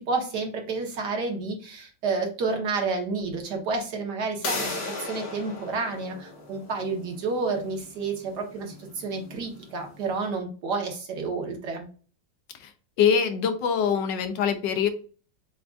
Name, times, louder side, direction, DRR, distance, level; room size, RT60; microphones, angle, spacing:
voice 1, 0.1-11.9, right 4 dB, 70° right, 2 dB, 1.6 m, -30 dB
sound 1, 4.4-10.0, left 3 dB, 55° left, 1.7 m, -37 dB
voice 2, 13.0-14.9, left 7 dB, 80° left, 8 dB, 1.3 m, -24 dB
7.3 x 2.5 x 2.3 m, 0.38 s
omnidirectional pair, 2.0 m